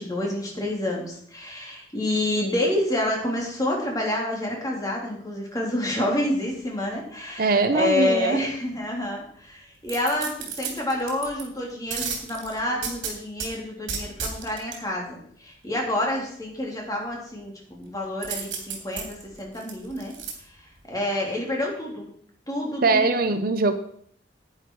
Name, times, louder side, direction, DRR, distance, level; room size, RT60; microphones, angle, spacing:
voice 1, 0.0-20.1 20.9-22.1 22.5-23.2, left 1 dB, 20° left, -1 dB, 3.1 m, -28 dB
voice 2, 7.4-8.4 22.8-23.7, right 3 dB, 50° right, 10 dB, 0.7 m, -21 dB
sound 1, 9.9-11.4 11.9-13.5 13.9-14.8 18.2-20.3 20.8-20.9, right 6 dB, 75° right, 3.1 m, -32 dB
10.5 x 9.5 x 4.6 m, 0.63 s
head